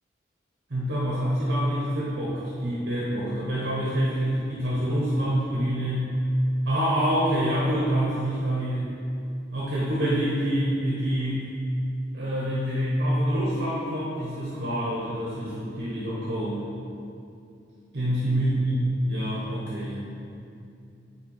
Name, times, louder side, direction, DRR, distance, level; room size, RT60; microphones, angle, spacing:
voice 1, 0.7-6.1 6.6-8.9 9.5-11.5 12.1-16.6 17.9-20.0, equal, 60° right, -7 dB, 1.1 m, -26 dB
8.0 x 4.2 x 5.5 m, 2.6 s
head